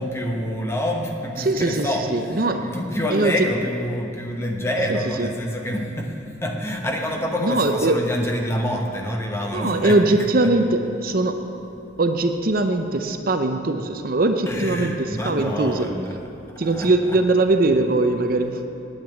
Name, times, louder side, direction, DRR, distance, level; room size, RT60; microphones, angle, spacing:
voice 1, 0.0-10.5 14.5-16.2 16.5-17.2, equal, 15° left, 1 dB, 1.0 m, -27 dB
voice 2, 1.4-2.7 3.1-3.3 4.9-5.3 7.4-8.0 9.5-11.4 12.0-15.9 16.6-18.6, right 2 dB, 45° right, 6 dB, 0.6 m, -21 dB
9.2 x 8.9 x 8.9 m, 2.9 s
head